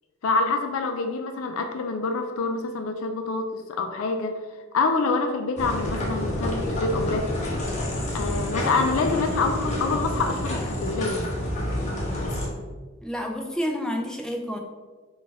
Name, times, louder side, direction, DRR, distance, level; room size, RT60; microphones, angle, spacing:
voice 1, 0.2-4.4 4.7-7.3 8.1-11.3, left 3 dB, 85° left, 5 dB, 0.4 m, -26 dB
sound 1, 5.6-12.5, left 1 dB, 35° left, 0.8 m, -28 dB
voice 2, 13.0-14.6, equal, 5° left, 2 dB, 0.4 m, -29 dB
4.1 x 2.3 x 4.5 m, 1.3 s
head